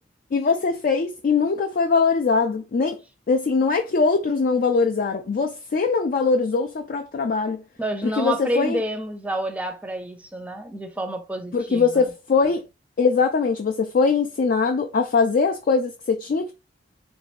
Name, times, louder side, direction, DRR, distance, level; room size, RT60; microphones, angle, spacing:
voice 1, 0.3-3.0 3.3-7.6 8.0-8.8 11.5-12.6 13.0-16.5, left 4 dB, 50° left, 0.4 m, -22 dB
voice 2, 7.8-12.1, right 1 dB, 10° right, 0.6 m, -29 dB
3.6 x 2.6 x 3.2 m
head